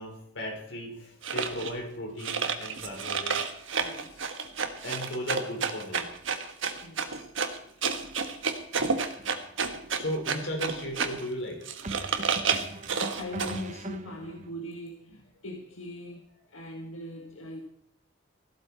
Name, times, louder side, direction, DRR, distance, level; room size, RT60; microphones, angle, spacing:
voice 1, 0.0-3.5 4.8-6.1 9.9-11.6 12.7-12.8, equal, 65° left, 1 dB, 5.0 m, -36 dB
sound 1, 1.2-1.7 2.2-11.3 11.6-13.6, right 5 dB, 70° right, 1.4 m, -30 dB
voice 2, 3.8-4.5 6.8-7.3 12.0-17.6, left 1 dB, 90° left, 2 dB, 1.7 m, -42 dB
sound 2, 9.2-9.4 11.8-14.5, right 2 dB, 35° right, 0.9 m, -40 dB
15.0 x 12.5 x 4.5 m, 0.75 s
head